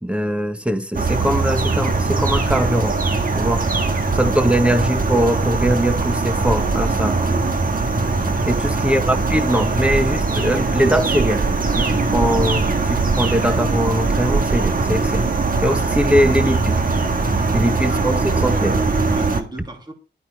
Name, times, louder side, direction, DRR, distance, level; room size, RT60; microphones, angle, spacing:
voice 1, 0.0-3.0 3.3-3.6 4.1-7.2 8.5-11.4 11.7-15.3 15.6-16.8 17.5-18.1 18.4-18.8, equal, 5° right, 1.3 m, -21 dB
sound 1, 0.9-19.4, right 3 dB, 50° right, 1.7 m, -20 dB
voice 2, 8.2-8.6 17.4-18.5 18.9-19.9, right 1 dB, 25° right, 2.8 m, -38 dB
12.0 x 9.2 x 4.6 m
wide cardioid pair, 135°, 19 cm